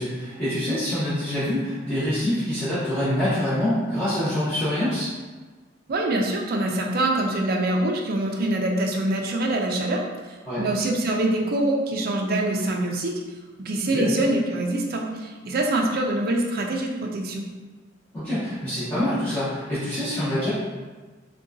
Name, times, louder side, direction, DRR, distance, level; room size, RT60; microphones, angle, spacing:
voice 1, 0.0-5.1 10.4-10.6 13.9-14.1 18.1-20.5, left 1 dB, 10° left, -15 dB, 0.9 m, -25 dB
voice 2, 5.9-13.2 13.6-17.5, right 1 dB, 50° right, 1 dB, 0.4 m, -24 dB
3.7 x 2.3 x 2.5 m, 1.3 s
head